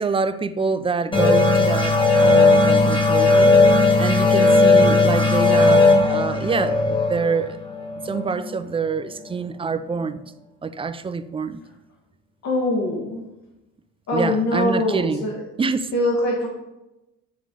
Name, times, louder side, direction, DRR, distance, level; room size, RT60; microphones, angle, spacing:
voice 1, 0.0-3.5 4.0-7.6 8.0-10.2 10.6-11.6 14.1-15.2 15.6-15.9, right 4 dB, 20° right, 12 dB, 0.4 m, -26 dB
sound 1, 1.1-8.4, left 3 dB, 15° left, 1.7 m, -16 dB
voice 2, 12.4-13.2 14.1-15.4 15.9-16.5, left 1 dB, 60° left, -3 dB, 1.4 m, -23 dB
8.6 x 3.1 x 3.8 m, 0.96 s
supercardioid pair, 75°, 30 cm